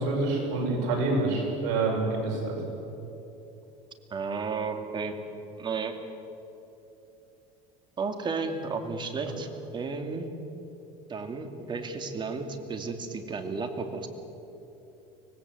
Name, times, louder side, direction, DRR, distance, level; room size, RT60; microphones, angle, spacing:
voice 1, 0.0-2.6, right 3 dB, 70° right, 0 dB, 6.6 m, -27 dB
voice 2, 4.1-5.2 5.6-6.0 8.0-10.3 11.1-14.1, right 4 dB, 30° right, 6 dB, 2.6 m, -33 dB
24.5 x 19.5 x 8.1 m, 3.0 s
supercardioid pair, 115°, 16 cm